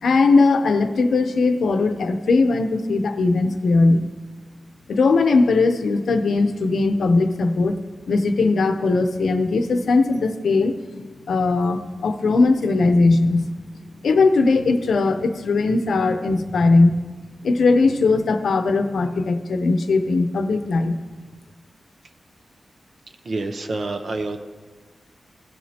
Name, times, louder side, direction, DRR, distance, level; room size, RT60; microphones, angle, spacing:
voice 1, 0.0-4.1 4.9-7.7 8.1-10.7 11.3-13.5 14.0-17.0 17.4-21.0, left 3 dB, 80° left, 7 dB, 0.7 m, -19 dB
voice 2, 23.2-24.4, right 2 dB, 50° right, 6 dB, 0.6 m, -27 dB
16.5 x 7.5 x 2.9 m, 1.3 s
wide cardioid pair, 160°, 0 cm